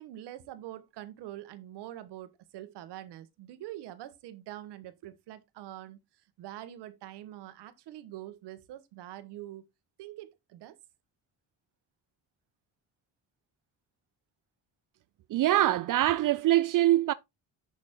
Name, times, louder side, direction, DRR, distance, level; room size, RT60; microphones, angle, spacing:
voice 1, 0.0-6.0 6.4-9.7 10.0-10.8, right 13 dB, 85° right, 1.2 m, -44 dB
voice 2, 15.3-17.1, right 14 dB, 55° right, 0.4 m, -24 dB
6.7 x 6.2 x 3.6 m
cardioid pair, 85°, 40 cm